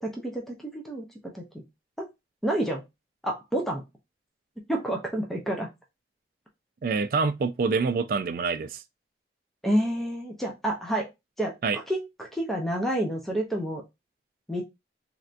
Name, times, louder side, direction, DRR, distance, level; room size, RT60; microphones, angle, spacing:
voice 1, 0.0-1.1 1.3-1.6 2.0-2.1 2.4-2.8 3.2-3.8 4.7-5.7 9.6-11.1 11.4-13.8 14.5-14.6, right 1 dB, ahead, 0.6 m, -29 dB
voice 2, 6.8-8.8 11.6-11.8, right 4 dB, 50° right, 0.3 m, -26 dB
3.2 x 2.6 x 2.5 m
head